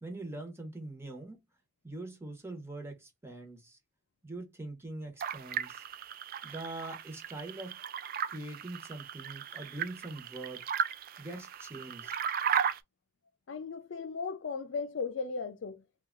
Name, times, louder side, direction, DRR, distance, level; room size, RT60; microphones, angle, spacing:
voice 1, 0.0-1.4 1.8-3.8 4.2-5.8 6.4-7.8 8.3-10.6 11.2-12.1, right 2 dB, 15° right, 0.9 m, -43 dB
sound 1, 5.2-12.8, right 8 dB, 50° right, 0.3 m, -36 dB
voice 2, 13.5-16.1, left 5 dB, 70° left, 0.4 m, -37 dB
2.7 x 2.3 x 3.7 m
head